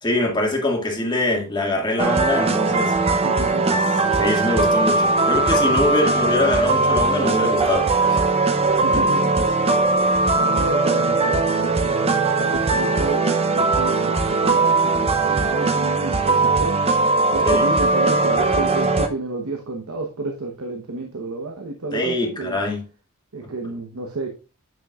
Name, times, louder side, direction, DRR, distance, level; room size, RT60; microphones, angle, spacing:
voice 1, 0.0-2.9 3.7-3.8 4.1-8.2 8.9-9.0 9.4-9.5 17.4-17.7 21.9-22.8 23.4-23.5, left 1 dB, 20° left, 1.8 m, -24 dB
sound 1, 2.0-19.1, right 3 dB, 30° right, 0.6 m, -19 dB
voice 2, 3.2-3.7 8.8-9.3 10.0-12.0 12.4-16.8 17.3-22.6 23.3-24.4, right 3 dB, 85° right, 1.0 m, -30 dB
8.7 x 6.3 x 2.4 m
head